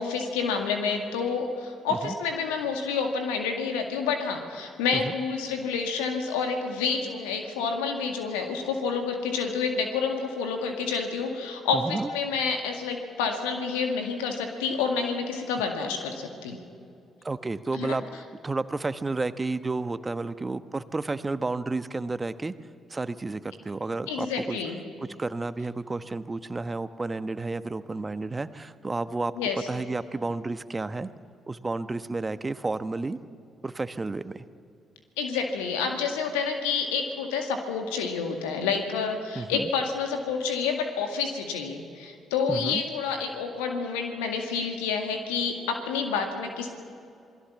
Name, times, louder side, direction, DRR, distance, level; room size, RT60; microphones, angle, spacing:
voice 1, 0.0-16.6 17.7-18.0 24.1-24.8 29.4-29.6 35.2-46.7, left 5 dB, 75° left, 4 dB, 2.0 m, -29 dB
voice 2, 11.7-12.1 17.2-22.5 22.9-24.6 25.2-31.1 31.5-33.2 33.6-34.4 39.3-39.7 42.5-42.8, right 3 dB, 25° right, 12 dB, 1.2 m, -31 dB
27.5 x 21.0 x 7.1 m, 2.5 s
figure-of-eight pair, 40°, 0 cm